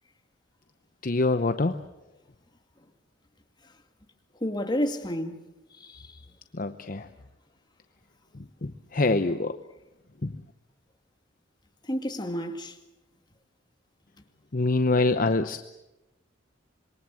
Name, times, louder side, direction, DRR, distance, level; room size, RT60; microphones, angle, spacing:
voice 1, 1.0-1.8 6.5-7.1 8.3-9.7 10.2-10.4 14.5-15.6, left 2 dB, 45° left, 0.8 m, -25 dB
voice 2, 4.4-5.4 5.8-6.2 11.8-12.8, equal, 25° left, 2.2 m, -30 dB
26.5 x 22.5 x 7.8 m
head